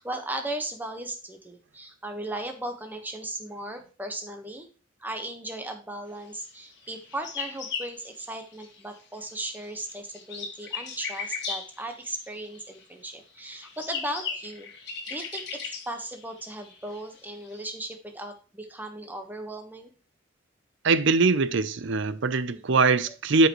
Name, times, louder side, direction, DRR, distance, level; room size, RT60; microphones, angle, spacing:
voice 1, 0.0-4.7 5.0-19.9 22.5-23.1, right 1 dB, 10° right, 1.3 m, -37 dB
sound 1, 6.8-9.0 9.2-12.8 13.4-17.6, left 6 dB, 60° left, 1.7 m, -37 dB
voice 2, 20.8-23.5, right 4 dB, 65° right, 0.6 m, -22 dB
11.5 x 5.4 x 3.1 m
head